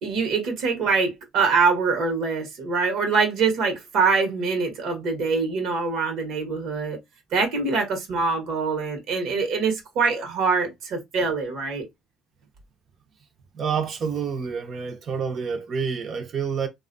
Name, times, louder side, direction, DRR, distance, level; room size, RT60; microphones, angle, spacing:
voice 1, 0.0-7.0 7.3-11.8, right 4 dB, 70° right, 1.1 m, -24 dB
voice 2, 13.5-16.7, right 6 dB, 50° right, 0.8 m, -28 dB
2.7 x 2.3 x 2.6 m
cardioid pair, 100°, 0 cm